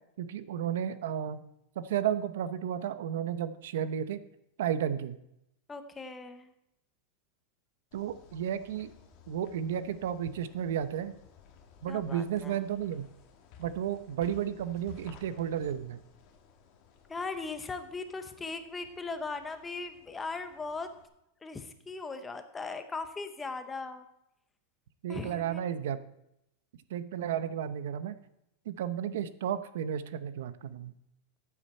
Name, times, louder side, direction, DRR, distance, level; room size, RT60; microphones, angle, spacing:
voice 1, 0.2-1.4 1.8-4.2 4.6-5.2 7.9-8.9 9.3-11.1 11.8-13.1 13.6-16.0 25.0-26.0 26.9-28.2 28.7-30.9, right 9 dB, 75° right, 13 dB, 0.8 m, -33 dB
voice 2, 5.7-6.5 11.9-12.6 17.1-20.9 21.4-24.0 25.1-25.6, left 4 dB, 10° left, 8 dB, 0.8 m, -39 dB
sound 1, 7.9-21.0, left 6 dB, 40° left, 1.6 m, -57 dB
14.5 x 8.7 x 4.3 m, 0.82 s
supercardioid pair, 175°, 0 cm